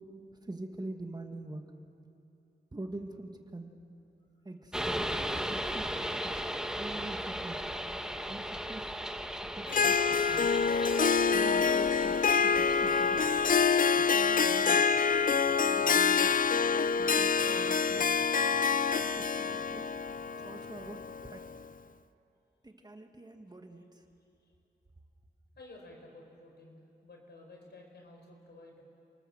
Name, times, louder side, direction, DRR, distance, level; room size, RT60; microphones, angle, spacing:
voice 1, 0.3-1.6 2.7-3.7 4.5-4.8 5.5-6.4 6.8-7.6 8.3-8.9 9.5-10.0 10.3-10.5 11.3-13.2 13.9-14.8 15.6-16.3 17.0-18.1 19.0-19.9 20.4-21.4 22.6-24.0, right 2 dB, 25° right, 5 dB, 1.8 m, -45 dB
sound 1, 4.7-13.6, equal, 5° right, 1.4 m, -37 dB
Harp, 9.7-21.5, left 5 dB, 50° left, 0.6 m, -26 dB
voice 2, 25.6-28.8, left 2 dB, 75° left, 1 dB, 5.0 m, -53 dB
29.5 x 19.0 x 7.4 m, 2.8 s
wide cardioid pair, 85°, 18 cm